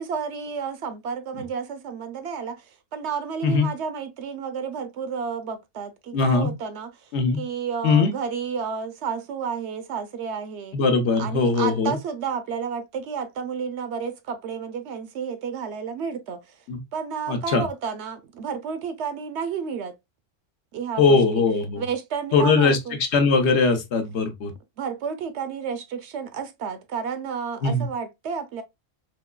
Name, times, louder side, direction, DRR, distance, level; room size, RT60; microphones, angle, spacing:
voice 1, 0.0-7.1 7.4-10.8 11.2-16.5 16.9-19.9 20.7-21.2 21.8-23.0 24.8-28.6, right 6 dB, 70° right, 0.8 m, -31 dB
voice 2, 6.1-6.5 7.1-7.4 7.8-8.1 10.7-12.0 16.7-16.8 17.3-17.7 21.0-21.8 22.3-24.5 27.6-27.9, left 4 dB, 65° left, 0.9 m, -20 dB
3.6 x 3.0 x 2.2 m
omnidirectional pair, 1.3 m